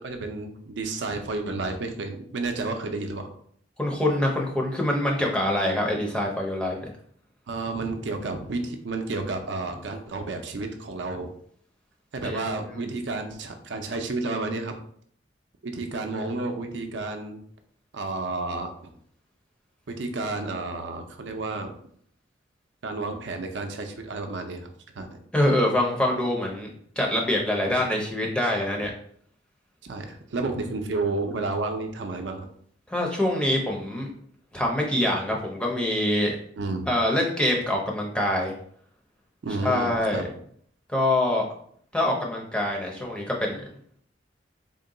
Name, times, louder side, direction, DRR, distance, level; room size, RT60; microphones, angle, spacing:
voice 1, 0.0-3.3 7.5-11.3 12.1-14.7 15.6-17.4 17.9-18.7 19.9-21.7 22.8-24.7 25.0-25.2 27.6-27.7 28.4-28.8 29.8-32.5 36.6-37.0 39.4-40.2, right 3 dB, 70° right, 5 dB, 0.5 m, -31 dB
voice 2, 3.8-6.8 12.2-12.9 25.3-26.7 27.0-28.9 32.9-34.1 34.5-36.4 36.9-38.5 39.6-40.2 40.9-41.5 41.9-43.6, left 1 dB, 5° left, -1 dB, 0.5 m, -25 dB
3.7 x 2.2 x 3.7 m, 0.62 s
head